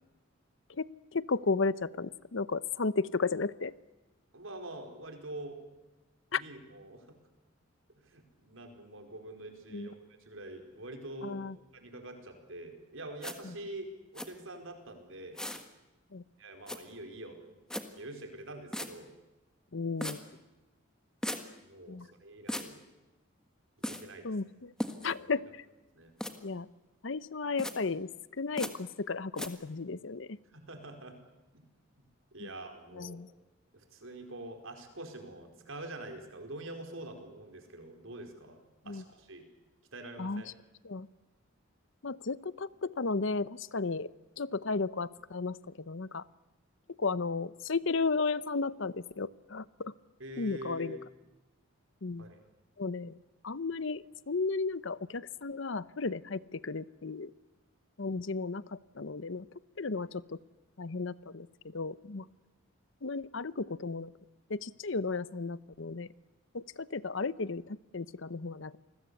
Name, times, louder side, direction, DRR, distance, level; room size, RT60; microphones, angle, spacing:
voice 1, 1.1-3.7 6.3-6.4 9.7-9.9 11.2-11.6 13.4-13.5 16.1-16.2 19.7-20.2 21.9-22.1 24.2-24.7 25.0-25.6 26.4-26.7 27.0-28.1 28.4-30.4 32.4-32.5 32.9-33.3 38.9-39.0 40.2-40.5 40.8-41.1 42.0-44.1 44.4-46.2 47.0-49.9 50.4-51.0 52.0-52.2 52.8-53.2 53.4-57.3 58.0-59.5 59.8-60.4 60.8-62.2 63.0-64.1 64.5-66.1 66.5-68.8, left 4 dB, 65° left, 17 dB, 0.8 m, -34 dB
voice 2, 4.3-5.6 6.3-7.1 8.1-11.4 11.7-15.4 16.4-17.5 18.0-19.1 21.6-22.8 23.8-24.3 25.0-25.3 25.9-26.1 30.5-31.2 32.3-33.2 33.7-38.6 38.8-39.5 39.9-40.5 50.2-51.0 52.2-52.4, right 1 dB, 70° right, 5 dB, 4.7 m, -45 dB
sound 1, 13.2-13.4 14.2-14.3 15.4-15.7 16.7-16.8 17.7-17.8 18.7-18.9 20.0-20.2 21.2-21.4 22.5-22.7 23.8-24.0 24.8-25.1 26.2-26.3 27.6-27.7 28.6-28.7 29.4-29.5, left 1 dB, 5° left, 1.5 m, -36 dB
28.0 x 21.0 x 8.3 m, 1.1 s
head